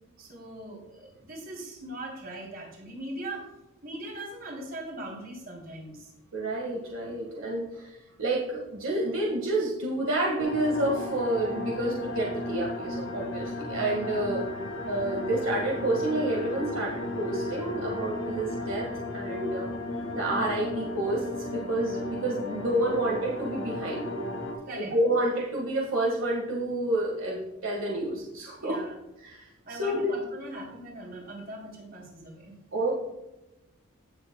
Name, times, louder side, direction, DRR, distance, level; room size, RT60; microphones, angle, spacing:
voice 1, 0.2-3.5 3.8-6.1 19.9-20.0 24.7-24.9 28.6-28.9 29.6-32.5, right 1 dB, 45° right, -1 dB, 2.9 m, -40 dB
voice 2, 6.3-14.4 14.9-18.9 19.1-19.7 20.1-24.0 24.7-28.8 29.2-30.1 32.7-32.9, right 1 dB, 70° right, -2 dB, 1.6 m, -29 dB
sound 1, 10.4-24.5, left 1 dB, 70° left, 1.6 m, -35 dB
15.5 x 6.9 x 2.2 m, 0.94 s
head